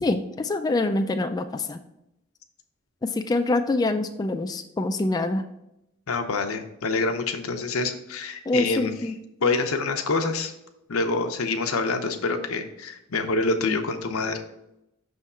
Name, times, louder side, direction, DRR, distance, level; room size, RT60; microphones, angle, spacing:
voice 1, 0.0-1.8 3.0-5.4 8.5-9.2 13.7-13.8, left 2 dB, 20° left, 6 dB, 0.3 m, -25 dB
voice 2, 6.1-8.9 9.4-10.5 10.9-14.4, left 3 dB, 85° left, 6 dB, 0.8 m, -26 dB
6.1 x 3.6 x 5.5 m, 0.85 s
head